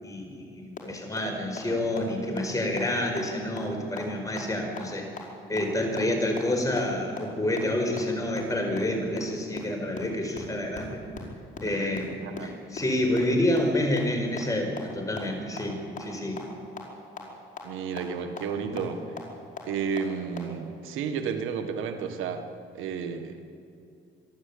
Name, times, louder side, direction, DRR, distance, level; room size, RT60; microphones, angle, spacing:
voice 1, 0.0-5.1 5.5-11.0 11.6-16.4 18.6-18.8, left 1 dB, 15° left, 2 dB, 5.0 m, -28 dB
sound 1, 0.8-0.9 1.2-1.3 1.6-1.7 2.0-2.1 2.4-2.5 2.8-2.9 3.2-3.3 3.6-3.7 4.0-4.1 4.4-4.5 4.8-4.9 5.2-5.3 5.6-5.7 6.0-6.1 6.4-6.5 6.8-6.9 7.2-7.3 7.6-7.7 8.0-8.1 8.4-8.5 8.8-8.9 9.2-9.3 9.6-9.7 9.9-10.0 10.3-10.4 10.7-10.8 11.1-11.2 11.5-11.6 11.9-12.0 12.4-12.5 12.8-12.9 13.2-13.3 13.6-13.7 14.0-14.1 14.4-14.5 14.8-14.9 15.2-15.3 15.6-15.7 16.0-16.1 16.4-16.5 16.8-16.9 17.2-17.3 17.6-17.7 18.0-18.1 18.4-18.5 18.8-18.9 19.2-19.3 19.6-19.7 20.0-20.1 20.4-20.5, left 7 dB, 40° left, 5.1 m, -36 dB
voice 2, 11.6-12.6 17.6-19.0 19.7-22.5 22.7-23.4, right 6 dB, 90° right, 7 dB, 1.6 m, -32 dB
26.5 x 11.5 x 8.7 m, 2.4 s
cardioid pair, 90°, 20 cm